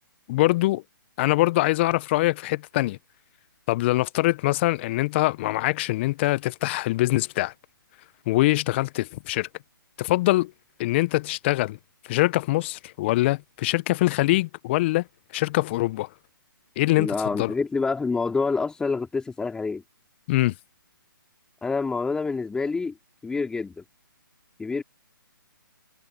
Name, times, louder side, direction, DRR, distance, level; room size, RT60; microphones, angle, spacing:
voice 1, 0.3-0.8 1.2-3.0 3.7-7.5 8.3-9.5 10.0-10.5 10.8-11.8 12.1-15.1 15.3-16.1 16.8-17.5 20.3-20.5, left 18 dB, 30° left, 0.9 m, -23 dB
voice 2, 17.0-19.8 21.6-22.9 23.2-23.8 24.6-24.8, left 4 dB, 5° left, 4.1 m, -27 dB
figure-of-eight pair, 140°, 12 cm